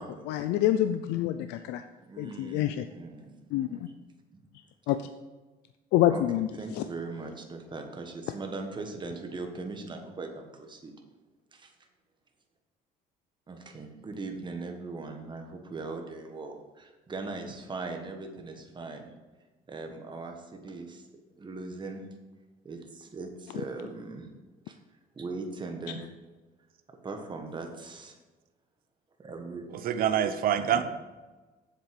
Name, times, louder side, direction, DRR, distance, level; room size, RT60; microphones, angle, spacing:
voice 1, 0.3-1.8 2.2-2.9 3.5-3.8 4.9-5.0 5.9-6.5 6.8-6.9, left 12 dB, 90° left, 10 dB, 0.4 m, -26 dB
voice 2, 2.1-3.8 4.3-4.4 6.1-6.2 6.5-10.9 11.5-11.7 13.5-19.1 19.7-21.1 21.4-22.0 22.6-24.3 24.7-24.8 25.1-26.1 27.0-28.2 29.2-29.7 30.7-30.8, right 3 dB, 25° right, 4 dB, 1.5 m, -40 dB
voice 3, 29.8-30.8, right 9 dB, 60° right, 10 dB, 0.7 m, -25 dB
7.5 x 7.4 x 5.3 m, 1.2 s
cardioid pair, 110°, 17 cm